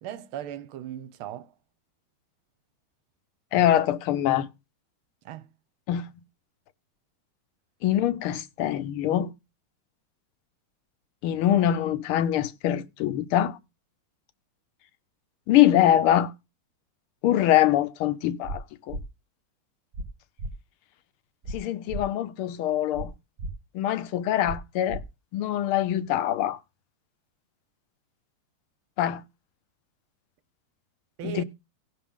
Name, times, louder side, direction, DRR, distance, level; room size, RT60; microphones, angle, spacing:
voice 1, 0.0-1.5 5.2-5.5 31.2-31.4, right 11 dB, 80° right, 1.6 m, -37 dB
voice 2, 3.5-4.5 5.9-6.0 7.8-9.3 11.2-13.6 15.5-16.3 17.2-19.0 21.5-23.1 23.7-25.0 25.3-26.6 29.0-29.2 31.2-31.4, left 12 dB, 85° left, 1.6 m, -23 dB
sound 1, 18.4-18.6 18.9-19.0 19.9-20.1 20.4-20.5 21.4-21.6 21.9-22.0 22.9-23.1 23.4-23.5 24.4-24.6 24.9-25.0, right 2 dB, 50° right, 1.2 m, -34 dB
17.0 x 6.0 x 3.6 m
omnidirectional pair, 2.3 m